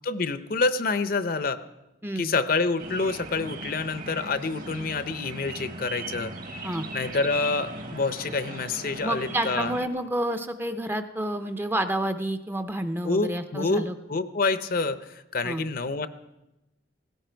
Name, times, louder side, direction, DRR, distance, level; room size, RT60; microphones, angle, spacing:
voice 1, 0.0-1.6 2.2-6.3 6.9-9.7 13.0-16.1, left 3 dB, 45° left, 12 dB, 0.6 m, -27 dB
sound 1, 2.8-9.9, right 2 dB, 45° right, 1.3 m, -38 dB
voice 2, 9.0-13.9 15.4-15.6, right 1 dB, 10° right, 8 dB, 0.6 m, -29 dB
17.5 x 16.0 x 4.5 m, 0.95 s
head